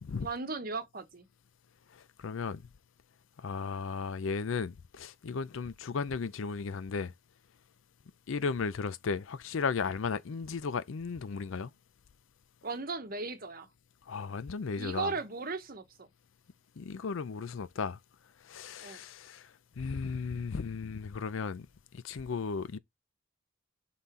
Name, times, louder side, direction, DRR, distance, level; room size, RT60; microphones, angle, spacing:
voice 1, 0.2-1.3 12.6-13.7 14.7-16.1 18.8-19.0, right 4 dB, 40° right, 1.0 m, -37 dB
voice 2, 1.9-2.6 3.4-7.1 8.3-11.7 14.1-15.1 16.8-18.0 18.4-21.7 21.9-22.8, left 5 dB, 70° left, 0.5 m, -35 dB
5.7 x 4.1 x 4.8 m
head